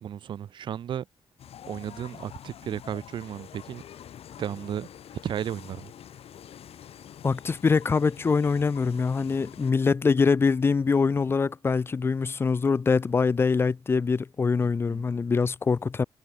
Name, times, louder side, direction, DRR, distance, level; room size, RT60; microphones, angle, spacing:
voice 1, 0.0-1.1 1.6-3.8 4.4-5.9 14.6-15.0, right 9 dB, 55° right, 0.4 m, -34 dB
sound 1, 1.4-9.7, left 10 dB, 90° left, 4.4 m, -46 dB
voice 2, 7.2-16.0, left 5 dB, 25° left, 0.4 m, -24 dB
wide cardioid pair, 180°, 10 cm